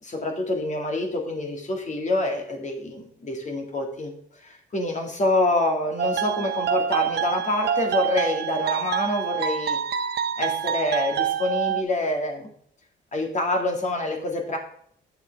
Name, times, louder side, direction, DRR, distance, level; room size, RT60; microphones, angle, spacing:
voice 1, 0.0-4.1 4.4-9.8 10.4-12.5 13.1-14.6, left 2 dB, 35° left, 3 dB, 2.2 m, -26 dB
sound 1, 6.0-11.8, right 8 dB, 55° right, 0.7 m, -26 dB
9.0 x 6.7 x 3.5 m, 0.66 s
cardioid pair, 90°, 20 cm